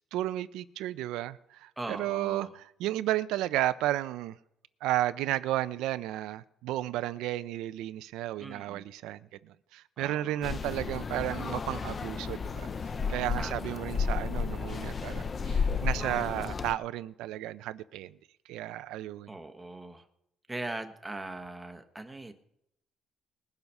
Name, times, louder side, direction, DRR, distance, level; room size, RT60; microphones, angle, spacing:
voice 1, 0.1-4.4 4.8-12.7 13.1-18.2 18.5-19.3, right 14 dB, 85° right, 0.5 m, -33 dB
voice 2, 1.8-2.5 8.4-8.8 10.0-10.4 13.4-13.8 19.3-20.1 20.5-22.3, right 2 dB, 5° right, 0.9 m, -40 dB
sound 1, 10.4-16.7, left 5 dB, 20° left, 0.4 m, -32 dB
20.0 x 7.0 x 5.4 m
cardioid pair, 180°, 0 cm